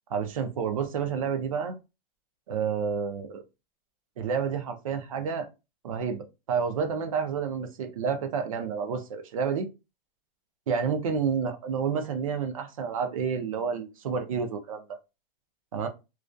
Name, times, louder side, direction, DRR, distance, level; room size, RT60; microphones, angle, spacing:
voice 1, 0.1-1.7 2.5-3.4 4.2-5.5 5.8-9.7 10.7-14.8 15.7-15.9, right 6 dB, 40° right, 0.4 m, -29 dB
2.4 x 2.3 x 2.2 m
hypercardioid pair, 170°, 29 cm